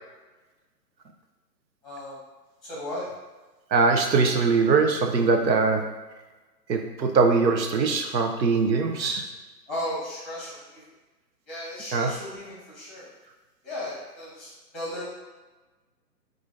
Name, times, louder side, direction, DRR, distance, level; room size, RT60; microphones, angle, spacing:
voice 1, 1.8-2.2 2.6-3.1 9.7-10.8 11.5-13.1 13.6-15.0, left 1 dB, ahead, -7 dB, 0.9 m, -35 dB
voice 2, 3.7-5.9 6.7-9.3 11.9-12.1, right 4 dB, 85° right, 4 dB, 0.7 m, -22 dB
4.8 x 2.5 x 2.5 m, 1.2 s
figure-of-eight pair, 135°, 49 cm